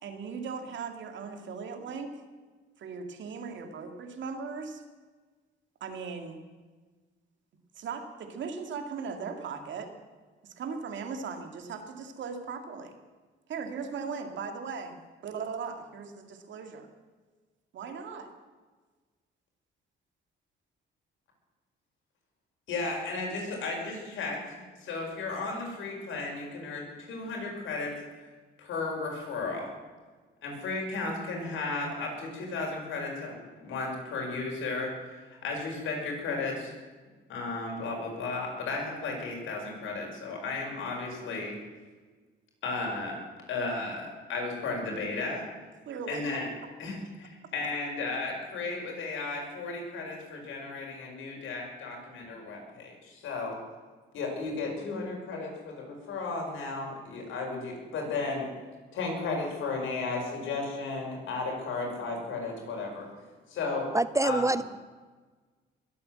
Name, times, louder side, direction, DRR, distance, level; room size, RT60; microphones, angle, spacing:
voice 1, 0.0-2.2 2.8-4.8 5.8-6.4 7.7-9.9 10.4-13.0 13.5-16.9 17.7-18.3 45.9-46.3, right 5 dB, 70° right, 5 dB, 2.4 m, -38 dB
voice 2, 22.7-24.4 24.8-27.9 28.6-29.7 30.4-36.7 37.3-41.6 42.6-43.2 43.5-45.5 46.1-46.5 46.8-53.6 54.1-58.5 58.9-63.1 63.5-63.9 64.2-64.5, left 3 dB, 80° left, 0 dB, 5.5 m, -34 dB
voice 3, 63.9-64.6, right 2 dB, 15° right, 16 dB, 0.5 m, -25 dB
21.0 x 8.6 x 7.8 m, 1.4 s
cardioid pair, 90°, 20 cm